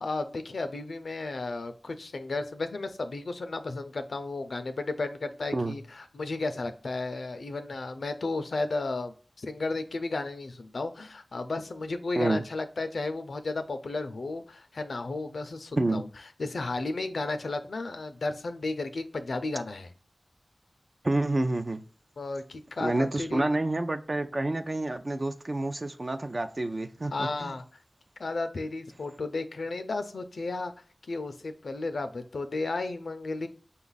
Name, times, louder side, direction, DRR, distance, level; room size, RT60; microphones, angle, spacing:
voice 1, 0.0-16.1 16.4-19.9 22.2-23.5 27.1-27.6 28.2-30.7 31.1-33.5, left 3 dB, 90° left, 0.4 m, -33 dB
voice 2, 21.0-21.8 22.8-27.6, right 2 dB, 50° right, 0.4 m, -28 dB
5.2 x 2.3 x 4.0 m
cardioid pair, 45°, 0 cm